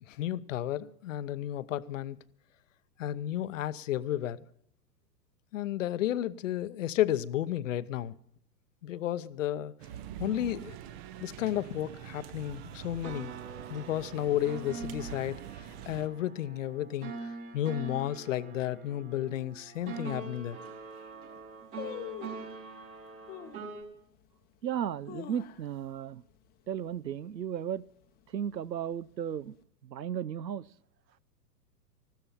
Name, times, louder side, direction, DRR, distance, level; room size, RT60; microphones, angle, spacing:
voice 1, 0.1-2.2 3.0-4.4 5.5-8.1 8.8-9.7 10.2-10.8 11.2-13.3 13.7-15.4 15.9-20.6, left 12 dB, 50° left, 0.8 m, -32 dB
sound 1, 9.8-16.1, right 11 dB, 30° right, 0.7 m, -44 dB
sound 2, 12.8-23.8, right 4 dB, 60° right, 5.9 m, -43 dB
sound 3, 19.7-19.8 20.5-20.6 20.8-21.2 21.8-22.5 23.3-23.7 24.2-24.3 24.8-25.9 26.2-26.3 26.7-27.0 27.4-27.8 28.4-29.2 29.5-29.6, left 11 dB, 20° left, 0.8 m, -44 dB
voice 2, 24.6-26.2 26.7-27.8 28.3-29.6 29.8-30.7, right 9 dB, 85° right, 0.7 m, -35 dB
15.0 x 13.0 x 5.6 m
figure-of-eight pair, 110°, 49 cm